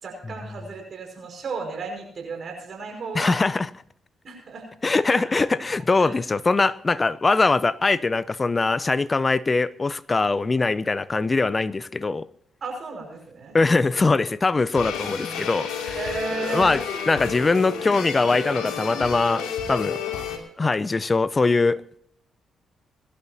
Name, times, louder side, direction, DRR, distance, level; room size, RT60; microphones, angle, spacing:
voice 1, 0.0-3.4 4.2-5.2 6.0-6.1 12.6-13.6 16.0-16.8, right 4 dB, 55° right, 5.5 m, -34 dB
voice 2, 3.1-3.7 4.8-12.3 13.5-16.1 16.5-20.0 20.6-21.8, left 3 dB, 35° left, 0.7 m, -22 dB
sound 1, 14.7-20.4, left 6 dB, 75° left, 2.6 m, -31 dB
22.5 x 12.0 x 2.8 m
hypercardioid pair, 45°, 0 cm